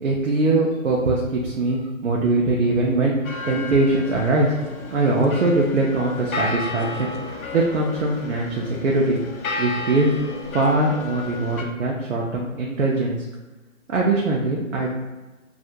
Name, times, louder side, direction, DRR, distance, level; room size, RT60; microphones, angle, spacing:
voice 1, 0.0-4.5 4.9-9.2 9.6-13.2 13.9-14.9, right 2 dB, 65° right, -2 dB, 0.5 m, -22 dB
sound 1, 3.2-11.6, left 2 dB, 90° left, 0.5 m, -33 dB
2.4 x 2.1 x 2.7 m, 1.2 s
figure-of-eight pair, 160°, 41 cm